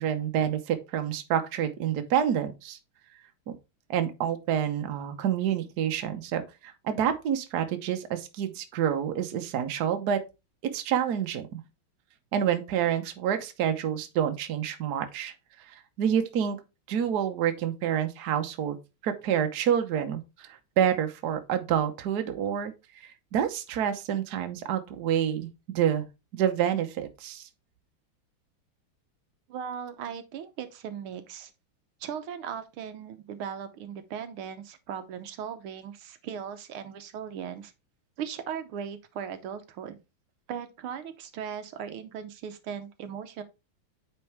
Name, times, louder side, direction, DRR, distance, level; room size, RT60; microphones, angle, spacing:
voice 1, 0.0-2.8 3.5-3.6 3.9-10.2 10.7-11.6 12.3-15.3 15.7-16.6 16.9-18.8 19.0-26.0 26.3-27.5, right 9 dB, 55° right, 1.3 m, -28 dB
voice 2, 29.5-31.5 32.0-37.7 38.2-40.0 40.5-43.4, right 8 dB, 80° right, 1.8 m, -38 dB
8.8 x 4.5 x 3.4 m
omnidirectional pair, 2.3 m